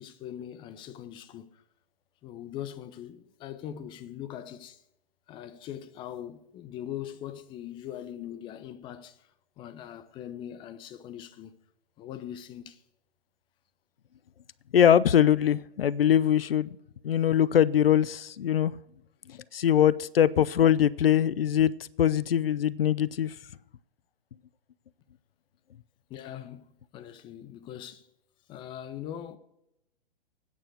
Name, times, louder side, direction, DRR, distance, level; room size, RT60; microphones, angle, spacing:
voice 1, 0.0-1.5 2.2-4.8 5.3-9.2 9.6-11.6 12.0-12.8 19.3-19.4 26.1-26.7 26.9-28.0 28.5-29.4, left 10 dB, 15° left, 0.6 m, -41 dB
voice 2, 14.7-16.7 17.0-18.7 19.5-21.7 22.0-23.3, left 10 dB, 70° left, 0.5 m, -22 dB
9.2 x 6.1 x 7.9 m
figure-of-eight pair, 115°, 30 cm